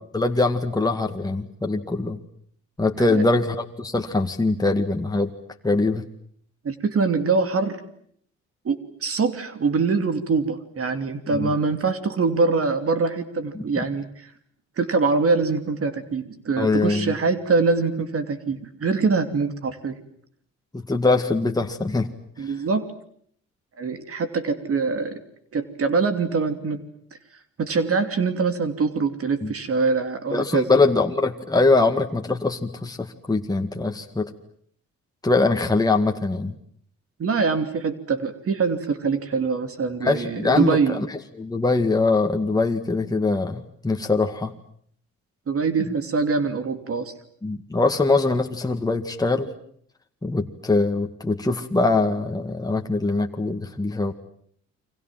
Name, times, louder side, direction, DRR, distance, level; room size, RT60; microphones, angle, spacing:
voice 1, 0.1-2.2 2.8-5.3 5.6-6.0 11.3-11.5 13.5-13.6 16.6-17.2 20.7-22.1 22.4-22.5 29.4-29.5 30.3-34.3 35.2-36.6 40.0-44.5 45.8-45.9 47.4-49.5 50.2-54.1, left 3 dB, 10° left, 3 dB, 2.0 m, -22 dB
voice 2, 6.6-7.8 8.6-14.3 14.8-20.0 22.4-22.9 23.8-25.2 25.5-26.8 27.6-30.7 37.2-41.0 45.5-47.1, right 4 dB, 50° right, 9 dB, 2.9 m, -24 dB
29.5 x 25.0 x 7.6 m, 0.64 s
cardioid pair, 90°, 30 cm